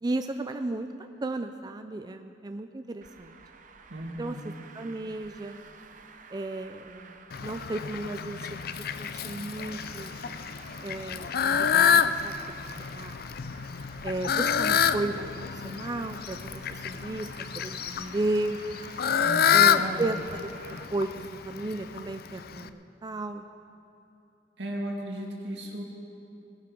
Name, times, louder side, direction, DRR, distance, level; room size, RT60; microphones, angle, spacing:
voice 1, 0.0-3.4 4.2-4.4 4.7-5.6 6.3-8.7 9.0-10.1 10.8-13.2 14.0-18.6 19.5-20.5 20.9-21.1 21.5-23.5, right 2 dB, 25° right, 7 dB, 0.4 m, -34 dB
Traffic noise roadway noise, 3.0-20.9, right 5 dB, 50° right, 0.8 m, -51 dB
voice 2, 3.9-4.4 19.2-20.1 24.6-25.8, right 1 dB, 80° right, -1 dB, 2.5 m, -35 dB
Fowl, 7.3-22.7, left 7 dB, 60° left, 0.5 m, -28 dB
19.5 x 11.5 x 5.3 m, 2.7 s
head